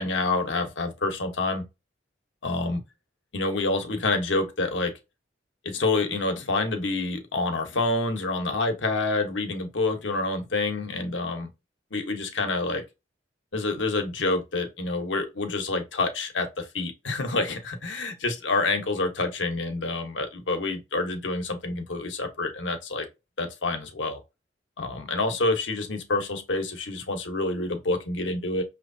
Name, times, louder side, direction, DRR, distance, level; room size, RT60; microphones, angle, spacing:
voice 1, 0.0-1.6 2.4-2.8 3.3-4.9 5.6-11.5 11.9-12.8 13.5-23.1 23.4-24.2 24.8-28.6, left 3 dB, 85° left, 1.1 m, -27 dB
6.2 x 3.0 x 2.7 m
head